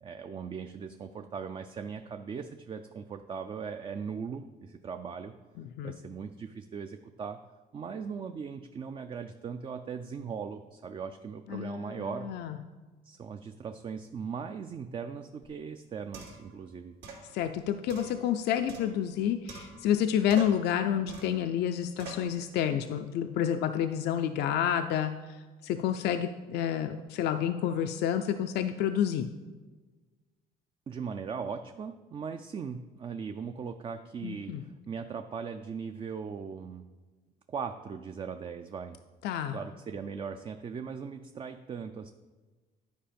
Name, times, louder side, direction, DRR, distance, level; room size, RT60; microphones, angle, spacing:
voice 1, 0.0-5.3 5.8-7.4 7.7-12.3 13.0-16.9 30.9-36.8 37.5-39.0 39.5-42.1, right 6 dB, 30° right, 7 dB, 0.4 m, -39 dB
voice 2, 5.6-6.0 11.5-12.6 17.3-25.4 25.6-29.3 34.2-34.6 39.2-39.6, left 9 dB, 75° left, 8 dB, 0.5 m, -29 dB
sound 1, 15.4-15.5 16.1-16.5 17.0-17.3 17.9-19.2 19.5-20.0 20.3-20.7 21.1-21.4 22.0-22.3, right 4 dB, 75° right, 2.0 m, -45 dB
10.0 x 4.7 x 5.1 m, 1.3 s
cardioid pair, 110°, 17 cm